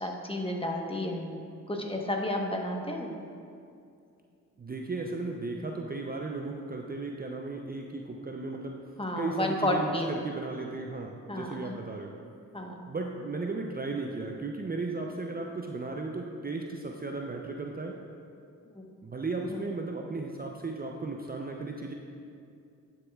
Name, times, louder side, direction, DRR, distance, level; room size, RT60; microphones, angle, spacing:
voice 1, 0.0-1.4 1.7-3.1 9.0-10.1 11.3-11.8 12.5-12.8 18.7-18.8 19.5-19.6, left 1 dB, 15° left, 1 dB, 1.1 m, -31 dB
voice 2, 4.6-8.8 9.2-12.1 12.9-18.0 19.0-21.9, right 3 dB, 25° right, 1 dB, 0.6 m, -35 dB
11.0 x 6.7 x 2.3 m, 2.4 s
supercardioid pair, 45°, 34 cm